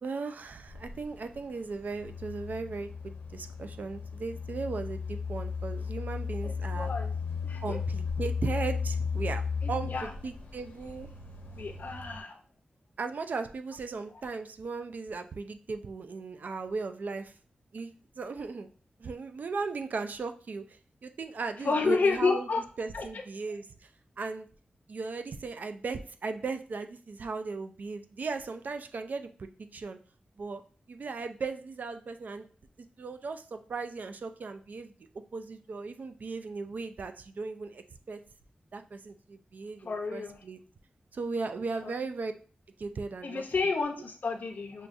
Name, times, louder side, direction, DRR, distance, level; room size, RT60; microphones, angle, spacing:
voice 1, 0.0-6.9 7.6-9.4 9.7-11.1 13.0-17.3 17.7-18.7 19.0-22.5 22.8-23.9 24.2-24.5 24.9-30.0 30.4-30.6 30.9-32.5 32.8-34.9 35.3-38.2 38.7-40.6 41.1-42.3 42.8-43.4, right 4 dB, 60° right, 8 dB, 0.4 m, -37 dB
sound 1, 0.7-12.2, left 5 dB, 85° left, 1.0 m, -35 dB
voice 2, 6.4-7.2 7.4-7.8 9.6-10.1 11.5-12.4 21.6-22.6 22.9-23.0 39.8-40.4 43.2-44.9, left 4 dB, 65° left, 4 dB, 0.6 m, -30 dB
6.1 x 2.3 x 2.5 m, 0.42 s
wide cardioid pair, 130°, 3 cm